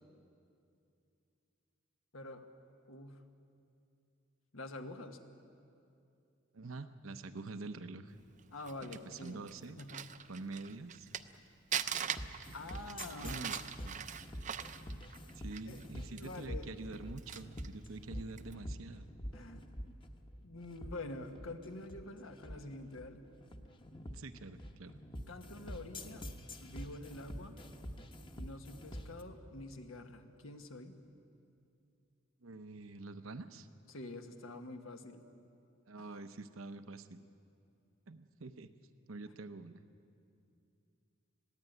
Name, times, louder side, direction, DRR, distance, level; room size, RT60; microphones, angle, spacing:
voice 1, 2.1-2.5 2.9-3.2 4.5-5.2 8.5-9.4 9.8-10.1 12.5-13.6 15.6-15.8 16.1-17.0 19.3-19.6 20.4-23.2 25.3-26.3 26.6-27.6 28.4-30.9 33.9-35.2 36.0-36.1, left 2 dB, 80° left, 6 dB, 1.4 m, -47 dB
voice 2, 6.5-8.2 9.1-9.8 10.3-11.1 13.2-14.1 15.4-19.1 24.1-24.9 32.4-33.7 35.9-37.2 38.1-38.7 39.1-39.8, right 3 dB, 80° right, 10 dB, 0.8 m, -46 dB
Crumpling crinkling, 8.4-11.4 11.7-15.8 16.2-16.3 16.8-17.7 18.3-18.5, right 8 dB, 40° right, 0.5 m, -41 dB
sound 1, 11.9-29.2, equal, 25° left, 1.1 m, -46 dB
20.5 x 15.5 x 9.3 m, 2.6 s
head